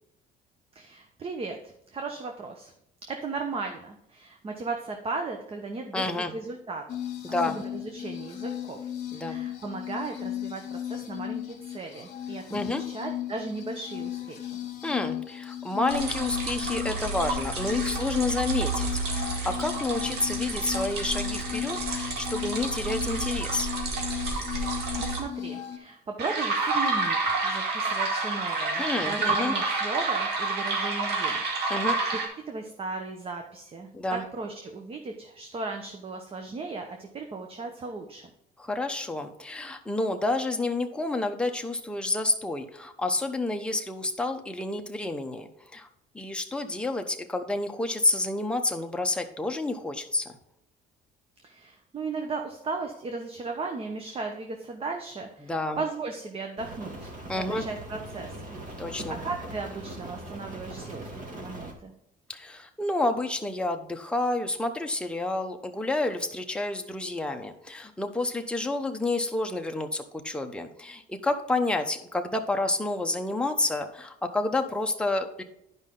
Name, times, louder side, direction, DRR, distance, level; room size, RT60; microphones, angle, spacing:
voice 1, 0.7-1.6 1.9-2.7 3.1-7.0 7.3-14.6 24.5-31.9 32.5-38.3 51.4-61.9, right 3 dB, 35° right, 4 dB, 1.0 m, -36 dB
voice 2, 5.9-6.3 7.2-7.6 9.1-9.4 12.5-12.8 14.8-23.7 28.8-29.5 31.7-32.0 33.9-34.2 38.6-45.9 46.1-50.4 55.4-55.8 57.3-57.6 58.8-59.2 62.3-75.4, left 2 dB, 5° left, 4 dB, 0.9 m, -29 dB
sound 1, 6.9-25.8, left 11 dB, 50° left, 1.7 m, -36 dB
sound 2, 15.9-25.2 26.2-32.3, right 3 dB, 75° right, 2.2 m, -29 dB
Rain, 56.6-61.7, right 1 dB, 50° right, 2.0 m, -40 dB
10.5 x 5.4 x 3.8 m, 0.80 s
cardioid pair, 110°, 17 cm